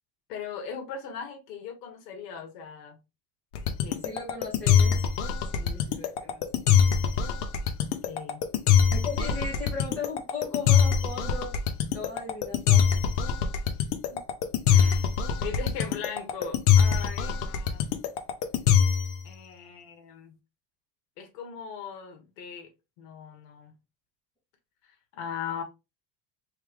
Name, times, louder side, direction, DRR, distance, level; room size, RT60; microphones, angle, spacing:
voice 1, 0.3-3.0 3.8-4.0 8.1-8.4 14.1-14.2 14.7-17.8 19.2-20.3 21.2-22.7 23.0-23.7 25.1-25.6, left 7 dB, 70° left, 1.3 m, -39 dB
sound 1, 3.5-19.2, left 8 dB, 45° left, 0.6 m, -23 dB
voice 2, 4.0-5.0 5.5-6.6 8.9-11.6 11.9-13.1, left 4 dB, 5° left, 1.8 m, -37 dB
3.4 x 3.3 x 3.5 m
cardioid pair, 180°, 50 cm